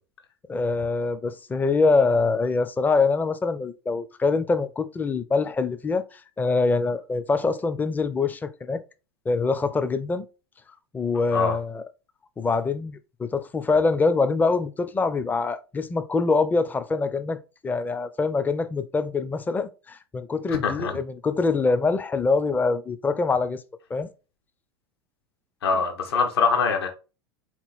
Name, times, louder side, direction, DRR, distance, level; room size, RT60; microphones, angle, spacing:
voice 1, 0.5-8.8 9.3-10.3 10.9-11.8 12.4-23.6 23.9-24.1, left 4 dB, 15° left, 0.4 m, -24 dB
voice 2, 20.5-20.9 25.6-26.9, left 5 dB, 70° left, 1.0 m, -23 dB
4.1 x 2.9 x 4.0 m
figure-of-eight pair, 85°, 14 cm